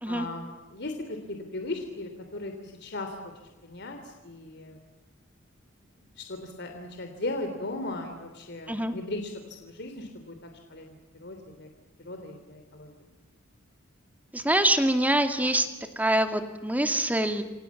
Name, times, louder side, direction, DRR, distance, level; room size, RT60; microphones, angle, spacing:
voice 1, 0.1-3.1 3.6-4.0 4.2-4.8 6.2-9.3 9.6-10.3 10.7-10.8 11.2-11.7 12.0-12.9, left 2 dB, 55° left, 5 dB, 3.1 m, -37 dB
voice 2, 14.3-15.7 16.0-17.4, right 1 dB, 10° right, 7 dB, 2.3 m, -24 dB
29.0 x 25.5 x 7.3 m, 1.2 s
head